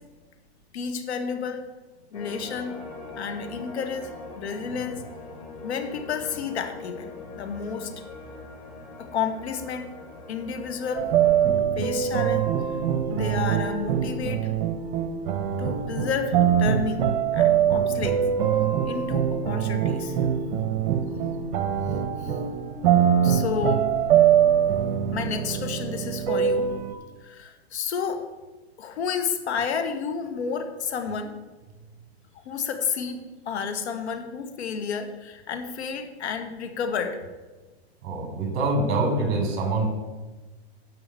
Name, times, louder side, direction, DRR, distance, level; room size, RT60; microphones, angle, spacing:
voice 1, 0.7-1.6 2.1-2.8 3.2-5.0 5.6-7.9 9.0-9.9 10.3-11.1 11.8-12.5 13.1-14.5 15.6-18.2 18.9-20.2 22.2-22.4 23.2-23.9 25.1-26.7 27.2-28.2 28.8-31.3 32.5-37.2, left 6 dB, 80° left, 7 dB, 1.8 m, -31 dB
sound 1, 2.1-11.5, left 3 dB, 50° left, 4.3 m, -42 dB
sound 2, 10.9-26.9, right 9 dB, 55° right, 1.2 m, -23 dB
voice 2, 38.0-39.9, right 2 dB, 35° right, 4 dB, 4.0 m, -25 dB
11.0 x 6.3 x 8.4 m, 1.2 s
hypercardioid pair, 130°, 33 cm